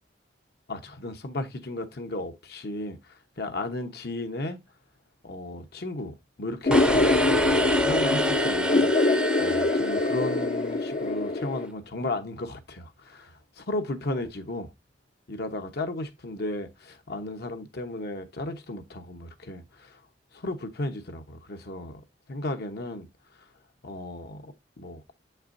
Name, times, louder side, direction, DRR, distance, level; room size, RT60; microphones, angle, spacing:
voice 1, 0.7-4.6 5.2-14.7 15.3-20.0 20.3-22.0 22.3-23.1 23.8-25.1, left 2 dB, 60° left, 1.0 m, -34 dB
sound 1, 6.7-11.7, left 2 dB, 40° left, 0.5 m, -24 dB
sound 2, 6.7-10.9, right 1 dB, 5° right, 0.6 m, -29 dB
7.2 x 5.8 x 2.6 m
head